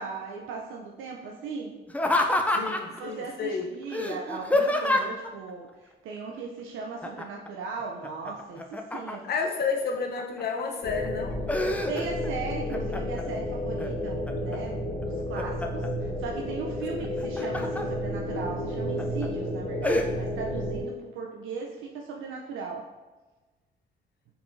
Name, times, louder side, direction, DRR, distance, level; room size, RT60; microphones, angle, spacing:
voice 1, 0.0-1.8 2.3-9.2 11.9-22.8, right 4 dB, 85° right, 0 dB, 0.5 m, -38 dB
Laughter, 1.9-3.0 3.9-5.3 7.0-7.5 7.8-9.4 10.0-10.6 11.0-12.3 12.7-13.3 13.8-14.6 15.0-15.9 17.0-17.8 18.4-18.5 19.0-19.3 19.8-20.1, left 1 dB, 5° left, 0.4 m, -28 dB
voice 2, 2.5-3.7 9.2-11.4 17.0-17.4, left 5 dB, 55° left, 2 dB, 0.8 m, -31 dB
sound 1, 10.8-20.8, left 1 dB, 80° left, 1.3 m, -32 dB
4.7 x 3.7 x 2.6 m, 1.2 s
cardioid pair, 90°, 20 cm